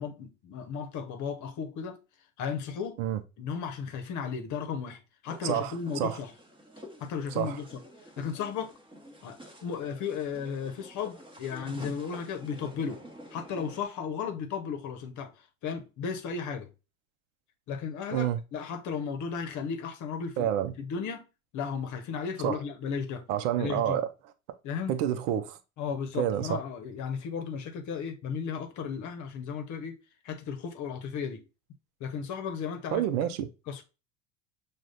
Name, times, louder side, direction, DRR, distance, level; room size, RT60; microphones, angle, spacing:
voice 1, 0.0-2.0 2.4-3.0 3.4-6.3 7.0-7.8 8.2-8.7 9.2-13.0 13.3-16.7 17.7-20.5 20.8-21.2 21.5-23.2 23.6-24.0 24.6-24.9 25.8-30.0 30.2-31.4 32.0-33.1 33.7-33.8, left 6 dB, 45° left, 0.9 m, -35 dB
sound 1, 5.2-13.9, equal, 15° right, 1.1 m, -49 dB
voice 2, 5.4-6.2 7.4-7.6 18.1-18.4 20.4-20.7 22.4-22.6 23.3-24.1 24.9-25.6 26.1-26.6 32.9-33.5, right 11 dB, 65° right, 0.7 m, -28 dB
6.2 x 2.4 x 2.3 m
hypercardioid pair, 75°, 41 cm